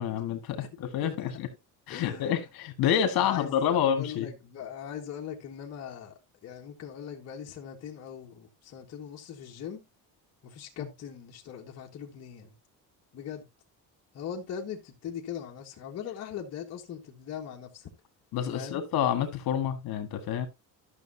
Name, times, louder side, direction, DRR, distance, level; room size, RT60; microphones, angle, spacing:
voice 1, 0.0-1.5 1.9-4.3 18.3-20.5, left 9 dB, 65° left, 1.8 m, -28 dB
voice 2, 0.6-1.4 1.9-2.4 3.2-6.1 6.4-9.8 10.4-12.5 13.1-13.4 14.1-17.9 18.5-18.8, left 8 dB, 40° left, 1.4 m, -40 dB
12.0 x 6.5 x 2.8 m
cardioid pair, 175°, 38 cm